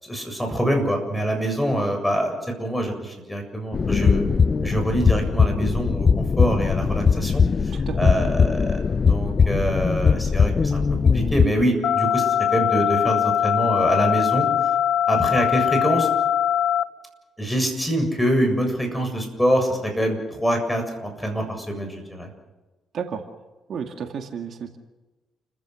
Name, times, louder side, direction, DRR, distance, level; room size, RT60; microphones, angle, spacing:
voice 1, 0.0-4.2 4.6-14.5 15.1-16.1 17.4-22.3, equal, 5° left, 4 dB, 7.4 m, -25 dB
sound 1, 3.7-11.5, left 5 dB, 40° left, 0.7 m, -20 dB
sound 2, 11.8-16.8, left 10 dB, 80° left, 0.8 m, -21 dB
voice 2, 23.7-24.8, right 7 dB, 60° right, 5 dB, 2.1 m, -31 dB
30.0 x 15.0 x 6.3 m, 1.2 s
cardioid pair, 90°, 0 cm